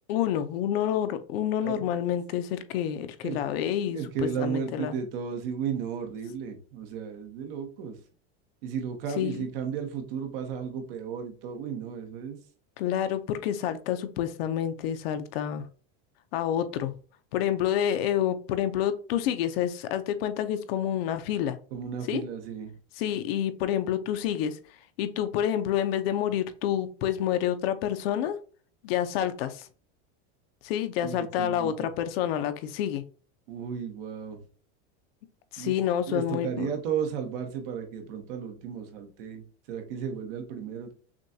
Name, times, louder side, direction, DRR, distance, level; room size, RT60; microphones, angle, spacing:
voice 1, 0.1-4.9 9.2-9.5 12.8-15.7 16.3-16.9 17.3-21.6 22.1-22.2 23.0-24.6 25.0-28.4 28.8-29.7 30.6-33.0 35.5-36.7, left 10 dB, 60° left, 0.7 m, -28 dB
voice 2, 3.9-8.0 8.6-12.4 21.7-22.7 31.0-31.9 33.5-34.4 35.6-35.7 36.1-40.9, right 7 dB, 55° right, 1.1 m, -34 dB
6.2 x 2.3 x 2.7 m
supercardioid pair, 180°, 33 cm